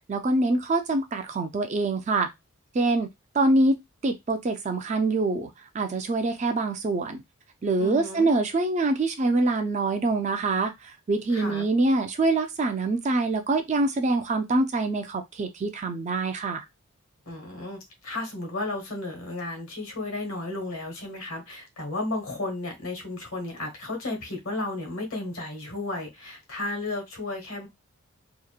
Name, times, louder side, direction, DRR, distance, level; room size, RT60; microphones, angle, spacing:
voice 1, 0.1-2.3 2.7-3.1 3.3-3.8 4.0-5.5 5.7-7.2 7.6-10.7 11.1-16.6, right 2 dB, 30° right, 0.3 m, -25 dB
voice 2, 7.8-8.3 11.3-11.7 17.3-27.7, left 2 dB, 75° left, 1.2 m, -33 dB
2.8 x 2.1 x 2.3 m
head